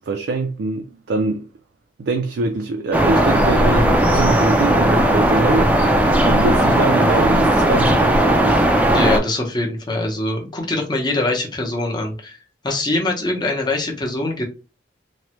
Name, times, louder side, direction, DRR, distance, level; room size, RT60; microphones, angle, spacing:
voice 1, 0.0-1.5 2.0-5.7 6.3-8.7, right 3 dB, 70° right, 0.4 m, -23 dB
sound 1, 2.9-9.2, right 1 dB, 10° right, 0.4 m, -16 dB
voice 2, 8.9-12.4 12.6-14.4, left 2 dB, 25° left, 0.8 m, -23 dB
3.1 x 2.1 x 2.9 m
head